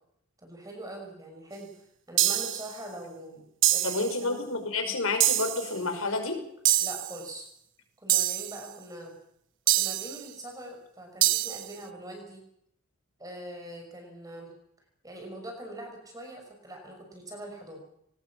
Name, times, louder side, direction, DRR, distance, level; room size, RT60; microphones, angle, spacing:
voice 1, 0.4-1.7 2.1-3.4 3.7-4.5 6.8-7.4 8.0-9.1 9.7-12.4 13.2-14.5 15.0-17.8, right 1 dB, 15° right, 3 dB, 6.0 m, -42 dB
sound 1, 2.2-2.7 3.6-4.1 5.2-5.7 6.7-7.2 8.1-8.6 9.7-10.2 11.2-11.7, right 14 dB, 60° right, 1.1 m, -25 dB
voice 2, 3.8-6.4, left 3 dB, 75° left, 6 dB, 5.8 m, -29 dB
23.0 x 19.5 x 7.3 m, 0.75 s
head